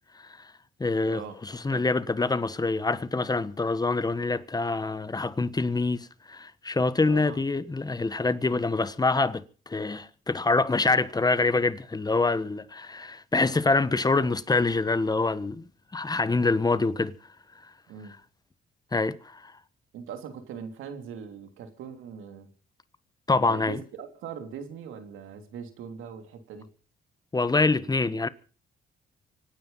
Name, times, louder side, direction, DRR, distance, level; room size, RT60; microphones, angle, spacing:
voice 1, 0.1-0.5 0.8-15.7 15.9-17.1 17.6-17.7 18.9-19.5 23.3-23.8 27.3-28.3, left 3 dB, 20° left, 1.3 m, -26 dB
voice 2, 7.1-7.4 8.4-8.6 17.9-18.2 19.9-22.5 23.4-26.7, right 7 dB, 90° right, 3.2 m, -41 dB
25.0 x 9.7 x 5.7 m
cardioid pair, 90°, 20 cm